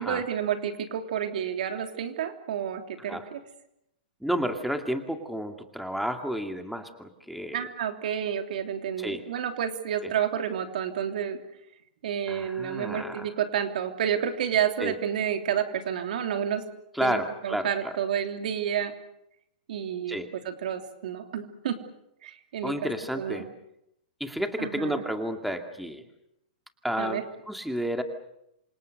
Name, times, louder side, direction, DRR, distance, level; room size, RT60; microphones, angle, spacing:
voice 1, 0.0-3.4 7.5-11.4 12.0-16.6 17.0-18.9 19.7-20.2 20.4-21.8 22.2-22.9 23.2-23.4 24.6-25.0 27.0-27.2, right 9 dB, 70° right, 6 dB, 3.3 m, -30 dB
voice 2, 4.2-7.7 9.0-9.2 12.3-13.3 14.8-14.9 16.9-17.9 20.1-20.3 22.6-23.5 24.2-26.0 26.8-28.0, equal, ahead, 6 dB, 2.2 m, -31 dB
27.5 x 26.5 x 6.6 m, 0.80 s
hypercardioid pair, 125°, 5 cm